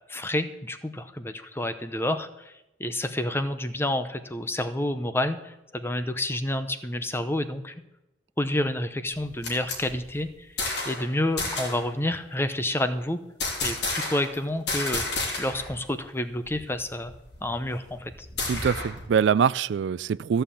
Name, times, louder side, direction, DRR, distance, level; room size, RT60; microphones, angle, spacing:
voice 1, 0.1-2.5 2.8-7.7 8.4-10.5 10.9-13.2 13.6-15.0 15.4-17.1 17.4-18.1, left 1 dB, 15° left, 10 dB, 0.7 m, -29 dB
sound 1, 9.1-11.1 11.4-11.9 13.4-14.4 14.7-15.7 16.0-16.1 16.5-19.1, left 2 dB, 65° left, 3.2 m, -31 dB
voice 2, 18.4-20.4, right 7 dB, 75° right, 19 dB, 0.3 m, -24 dB
14.5 x 5.6 x 8.4 m, 0.94 s
head